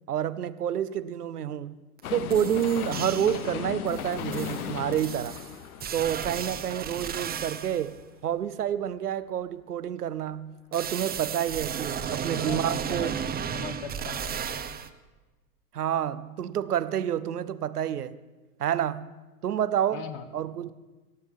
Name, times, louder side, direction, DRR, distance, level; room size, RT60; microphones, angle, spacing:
voice 1, 0.1-1.8 2.1-5.4 5.9-13.2 15.7-18.2 18.6-19.1 19.4-20.1 20.3-20.7, right 10 dB, 85° right, 0.7 m, -29 dB
sound 1, 2.0-8.0 8.4-8.5, left 9 dB, 70° left, 1.0 m, -37 dB
sound 2, 2.0-2.1 2.3-3.5 3.9-7.9 10.7-14.9, right 7 dB, 20° right, 0.8 m, -34 dB
voice 2, 12.4-13.1 13.5-14.3 19.9-20.3, left 8 dB, 50° left, 1.9 m, -39 dB
18.0 x 15.0 x 3.7 m
hypercardioid pair, 90°, 45 cm